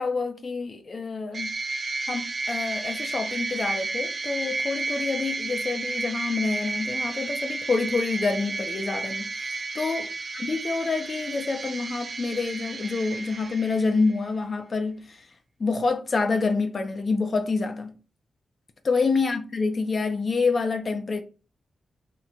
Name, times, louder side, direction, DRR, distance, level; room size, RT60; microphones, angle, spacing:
voice 1, 0.0-1.5 2.1-9.3 9.7-15.3 15.6-18.0 18.8-21.2, left 4 dB, 50° left, 0.4 m, -27 dB
sound 1, 1.3-14.2, right 3 dB, 50° right, 0.4 m, -32 dB
3.0 x 2.1 x 3.6 m
cardioid pair, 75°, 0 cm